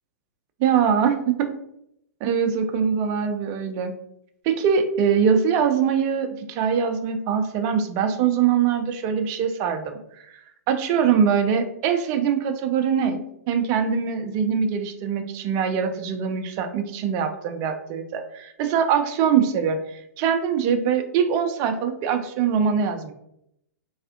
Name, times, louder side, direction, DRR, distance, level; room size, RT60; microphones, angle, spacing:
voice 1, 0.6-1.5 2.2-3.9 4.4-9.9 10.7-13.2 13.5-23.1, right 7 dB, 35° right, 7 dB, 0.4 m, -23 dB
3.4 x 2.4 x 2.6 m, 0.75 s
figure-of-eight pair, 110°, 9 cm